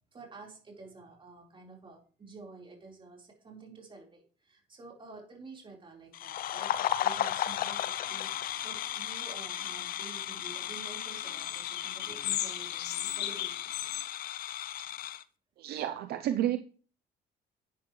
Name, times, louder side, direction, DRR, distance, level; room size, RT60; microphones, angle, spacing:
voice 1, 0.1-13.5, right 3 dB, 30° right, 4.4 m, -50 dB
sound 1, 6.1-15.2, left 11 dB, 60° left, 0.6 m, -35 dB
sound 2, 8.1-10.1 10.4-14.0, left 13 dB, 80° left, 1.0 m, -38 dB
voice 2, 15.6-16.6, right 12 dB, 70° right, 0.7 m, -30 dB
11.0 x 9.3 x 3.2 m
cardioid pair, 110°, 17 cm